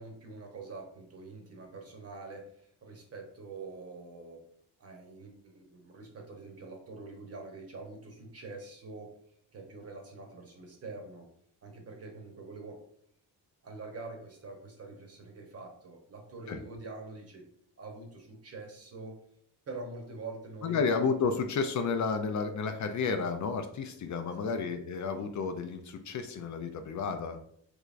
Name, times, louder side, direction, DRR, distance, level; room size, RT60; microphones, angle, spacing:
voice 1, 0.0-4.5 4.8-9.1 9.5-11.3 11.6-12.8 13.6-17.4 17.8-19.2 19.7-20.8 24.3-24.6, right 3 dB, 40° right, 2 dB, 0.9 m, -45 dB
voice 2, 20.6-27.4, left 5 dB, 50° left, 7 dB, 0.4 m, -31 dB
3.5 x 3.2 x 2.5 m, 0.66 s
cardioid pair, 105°, 39 cm